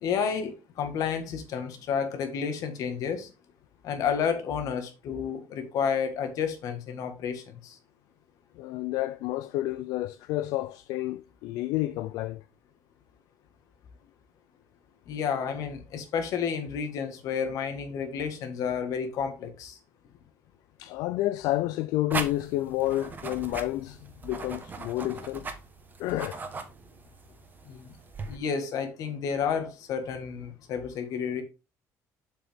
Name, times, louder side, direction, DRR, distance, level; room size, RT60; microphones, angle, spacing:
voice 1, 0.0-3.3 3.8-7.7 15.1-19.8 27.7-27.9 28.3-31.4, left 7 dB, 65° left, 1.7 m, -31 dB
voice 2, 8.6-12.4 20.8-25.5 26.0-26.4, left 16 dB, 85° left, 0.4 m, -30 dB
sound 1, 22.1-28.4, right 4 dB, 30° right, 1.2 m, -39 dB
6.9 x 6.1 x 3.6 m
cardioid pair, 125°, 6 cm